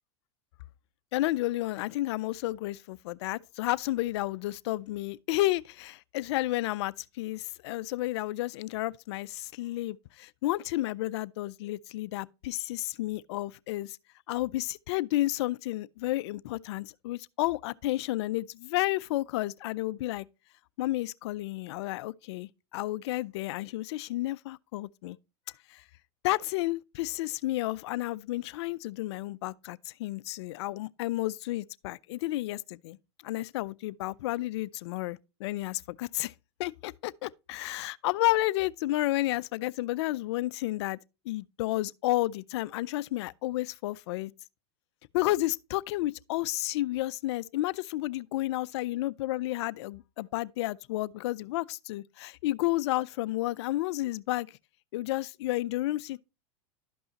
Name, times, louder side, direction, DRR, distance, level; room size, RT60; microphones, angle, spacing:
voice 1, 1.1-14.0 14.3-20.2 20.8-25.2 25.7-25.8 26.2-33.0 33.2-36.3 36.6-41.0 41.3-44.3 45.1-54.6 54.9-56.2, left 17 dB, 70° left, 0.4 m, -31 dB
12.0 x 5.4 x 2.8 m
supercardioid pair, 115°, 15 cm